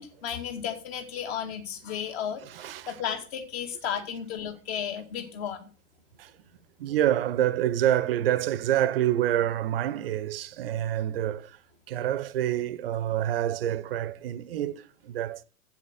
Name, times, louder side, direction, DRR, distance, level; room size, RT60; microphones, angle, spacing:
voice 1, 0.0-5.7, left 8 dB, 45° left, 2.3 m, -34 dB
voice 2, 2.4-3.0 6.2-6.3 6.8-11.6 11.9-15.4, right 12 dB, 40° right, 0.8 m, -27 dB
8.1 x 7.2 x 8.0 m
figure-of-eight pair, 110°, 45 cm